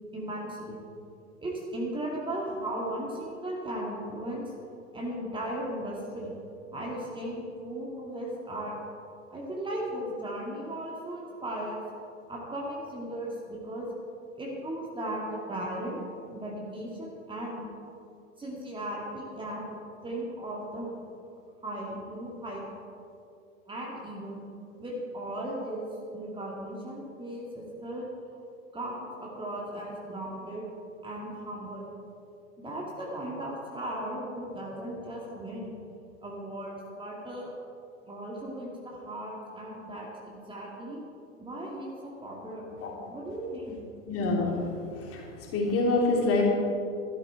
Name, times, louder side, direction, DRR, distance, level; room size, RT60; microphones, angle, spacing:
voice 1, 0.1-0.9 1.4-4.4 4.9-6.3 6.7-8.8 9.3-11.8 12.3-13.9 14.4-16.0 16.3-17.7 18.4-19.7 20.0-21.1 21.6-22.6 23.7-24.4 24.8-25.9 26.1-28.1 28.7-30.7 31.0-31.9 32.6-35.8 36.2-37.5 38.1-41.0 41.4-43.8 46.3-46.4, right 1 dB, 10° right, -3 dB, 2.2 m, -36 dB
voice 2, 44.1-44.6 45.0-46.4, left 2 dB, 35° left, -1 dB, 2.9 m, -26 dB
13.0 x 12.5 x 4.5 m, 2.6 s
figure-of-eight pair, 90°, 40 cm